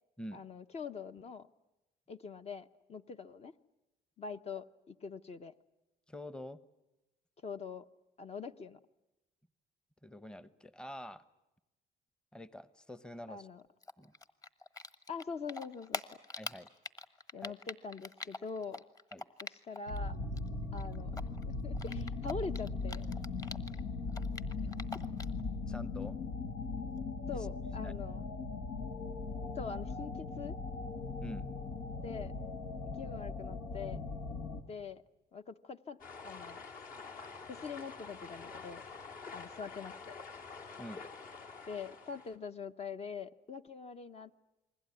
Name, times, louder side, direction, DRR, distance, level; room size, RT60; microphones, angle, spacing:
voice 1, 0.3-1.5 2.1-3.5 4.2-5.5 7.4-7.9 8.2-8.8 13.3-13.6 15.1-16.0 17.3-18.8 19.4-20.2 20.7-23.0 27.3-28.2 29.5-30.6 32.0-32.3 32.9-34.0 34.7-35.0 35.3-36.6 37.5-38.8 39.3-40.1 41.6-44.5, left 5 dB, 40° left, 9 dB, 0.9 m, -43 dB
voice 2, 6.1-6.6 10.0-11.2 12.3-13.5 14.0-14.1 16.4-16.7 17.4-17.5 19.1-19.3 25.6-26.2 27.3-27.5 27.8-27.9 31.2-31.5 40.8-41.0, equal, 5° left, 15 dB, 0.9 m, -46 dB
Typing, 13.8-15.2 15.5-20.0 20.2-23.8 24.1-25.4, left 2 dB, 20° left, 1.4 m, -43 dB
sound 1, 19.9-34.6, left 3 dB, 90° left, 2.2 m, -39 dB
sound 2, 36.0-42.4, left 4 dB, 55° left, 3.0 m, -48 dB
28.5 x 21.0 x 9.7 m, 1.0 s
cardioid pair, 110°, 17 cm